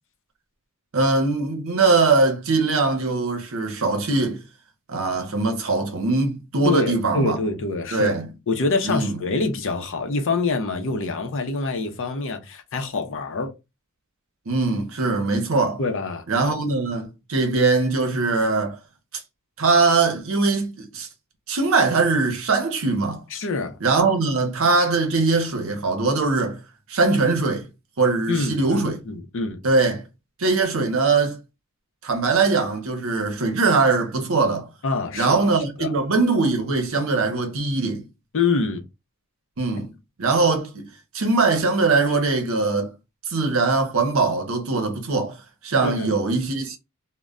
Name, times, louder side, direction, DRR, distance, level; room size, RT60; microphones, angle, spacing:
voice 1, 0.9-4.4 4.9-7.4 7.9-8.3 8.8-9.2 14.5-15.8 16.3-18.8 19.6-21.1 21.5-23.2 23.8-26.6 26.9-27.7 28.0-29.0 29.6-30.0 30.4-31.4 32.0-34.7 35.1-38.0 39.6-39.9 40.2-40.9 41.1-42.9 43.3-45.4 45.6-46.8, right 3 dB, 70° right, 0.7 m, -21 dB
voice 2, 6.6-8.2 8.5-13.5 15.8-16.2 23.3-23.8 28.3-29.6 34.8-35.9 38.3-38.9 45.8-46.1, left 3 dB, 60° left, 0.6 m, -25 dB
2.1 x 2.1 x 3.5 m
head